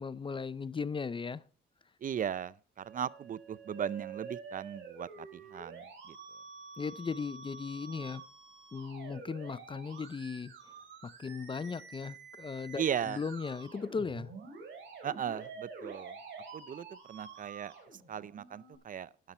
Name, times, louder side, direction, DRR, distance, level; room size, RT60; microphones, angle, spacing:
voice 1, 0.0-1.4 6.8-8.2 8.7-10.5 11.0-14.3, left 5 dB, 25° left, 0.5 m, -37 dB
voice 2, 2.0-6.2 12.8-13.2 15.0-16.2 16.5-19.1, right 8 dB, 45° right, 0.5 m, -37 dB
Musical instrument, 2.8-18.8, right 5 dB, 70° right, 4.5 m, -48 dB
12.0 x 10.5 x 4.4 m
cardioid pair, 90°, 20 cm